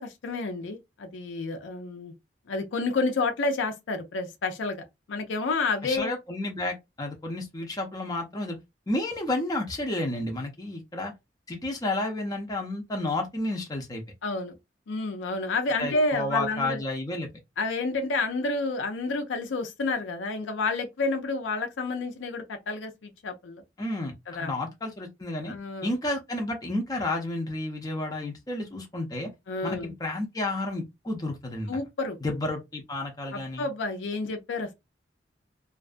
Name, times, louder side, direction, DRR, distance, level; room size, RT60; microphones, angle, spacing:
voice 1, 0.0-2.1 2.5-6.1 14.2-14.6 14.9-16.8 17.6-23.6 24.3-24.5 25.5-25.9 29.5-29.9 31.7-32.2 33.3-34.7, left 3 dB, 85° left, 0.5 m, -30 dB
voice 2, 5.8-8.6 8.9-11.1 11.5-14.0 15.8-17.3 23.8-24.1 24.4-25.5 25.8-29.3 29.6-31.8 32.2-33.7, left 2 dB, 20° left, 0.5 m, -31 dB
2.5 x 2.3 x 2.4 m
head